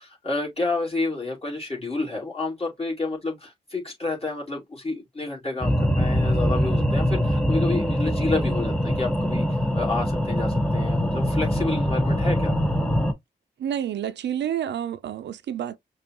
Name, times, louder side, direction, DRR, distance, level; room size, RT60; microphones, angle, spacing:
voice 1, 0.0-12.5, left 3 dB, 35° left, 2.5 m, -30 dB
sound 1, 5.6-13.1, equal, 5° left, 1.2 m, -23 dB
voice 2, 13.6-15.8, right 10 dB, 80° right, 0.5 m, -29 dB
5.3 x 2.4 x 2.9 m
cardioid pair, 55°, 18 cm